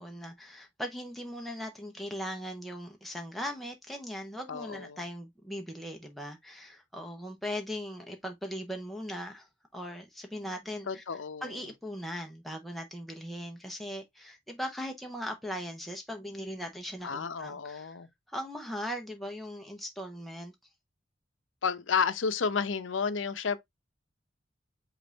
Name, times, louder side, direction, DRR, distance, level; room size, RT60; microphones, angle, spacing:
voice 1, 0.0-9.5 9.7-11.0 11.4-18.0 18.3-20.5, equal, ahead, 0.6 m, -39 dB
voice 2, 4.5-5.0 10.9-11.6 17.0-18.1 21.6-23.6, left 5 dB, 85° left, 0.6 m, -31 dB
5.2 x 2.5 x 3.9 m
head